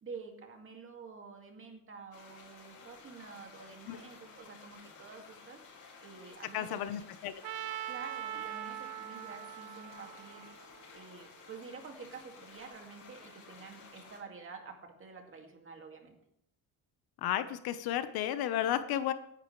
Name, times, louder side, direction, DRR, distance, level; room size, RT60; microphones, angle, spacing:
voice 1, 0.0-6.8 7.8-10.5 10.9-16.2, right 5 dB, 35° right, 3 dB, 2.3 m, -49 dB
sound 1, 2.1-14.2, left 5 dB, 55° left, 5.2 m, -54 dB
voice 2, 6.5-7.3 17.2-19.1, left 11 dB, 90° left, 11 dB, 1.2 m, -33 dB
Trumpet, 7.4-11.5, right 12 dB, 80° right, 0.8 m, -42 dB
17.5 x 10.5 x 3.3 m, 0.72 s
cardioid pair, 140°, 36 cm